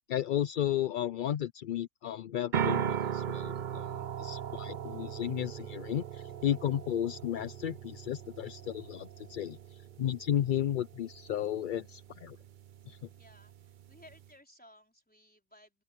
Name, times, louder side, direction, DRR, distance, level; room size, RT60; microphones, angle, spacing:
voice 1, 0.1-3.9 4.2-12.4 12.9-13.0, left 11 dB, 60° left, 0.5 m, -33 dB
sound 1, 2.5-14.3, right 9 dB, 50° right, 0.7 m, -39 dB
voice 2, 13.2-15.8, left 1 dB, 5° left, 4.5 m, -59 dB
open air
omnidirectional pair, 1.3 m